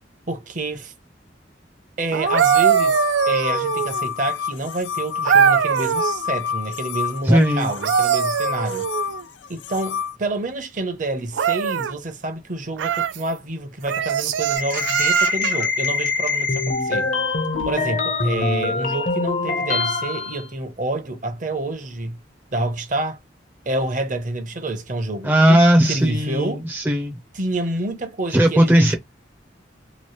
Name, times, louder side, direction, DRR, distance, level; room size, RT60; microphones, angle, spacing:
voice 1, 0.3-0.9 2.0-3.0 3.3-8.9 9.5-17.1 17.6-22.2 22.5-23.2 23.7-25.6 25.9-26.6 27.3-28.9, right 2 dB, 45° right, 0.7 m, -28 dB
sound 1, 2.1-4.1 5.3-6.2 7.6-9.2 11.3-11.9 12.8-13.2 13.9-15.7 17.5-17.7, right 8 dB, 80° right, 0.3 m, -21 dB
sound 2, 2.3-10.2, left 7 dB, 80° left, 0.3 m, -28 dB
voice 2, 7.3-7.7 25.2-27.2 28.3-28.9, equal, 10° right, 0.5 m, -17 dB
sound 3, 14.5-20.4, left 4 dB, 45° left, 0.7 m, -24 dB
3.0 x 2.5 x 3.0 m
head